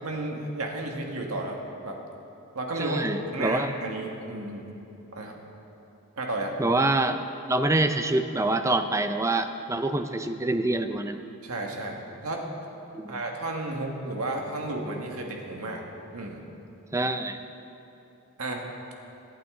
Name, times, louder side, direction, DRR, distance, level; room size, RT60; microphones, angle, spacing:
voice 1, 0.0-1.6 1.8-2.0 2.5-3.0 3.3-4.6 5.1-5.3 6.2-6.5 11.4-12.0 12.2-12.4 13.1-15.8 16.1-16.4 18.4-18.7, right 2 dB, 75° right, 1 dB, 1.7 m, -32 dB
voice 2, 2.8-3.7 6.6-11.2 12.9-13.2 16.9-17.4, right 2 dB, 15° right, 8 dB, 0.5 m, -26 dB
24.0 x 8.8 x 3.8 m, 2.9 s
head